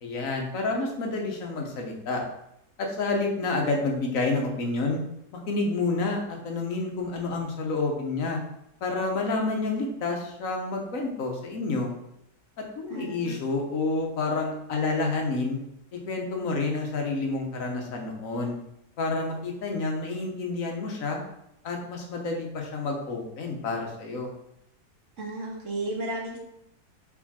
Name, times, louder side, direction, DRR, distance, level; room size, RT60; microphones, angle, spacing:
voice 1, 0.0-2.2 2.8-5.0 5.3-8.4 8.8-11.9 12.6-15.6 15.9-18.6 19.0-21.2 21.6-24.3, left 3 dB, 55° left, 1 dB, 1.4 m, -29 dB
voice 2, 12.9-13.4 25.2-26.4, right 2 dB, 50° right, -2 dB, 1.7 m, -33 dB
4.9 x 4.9 x 4.2 m, 0.82 s
omnidirectional pair, 1.8 m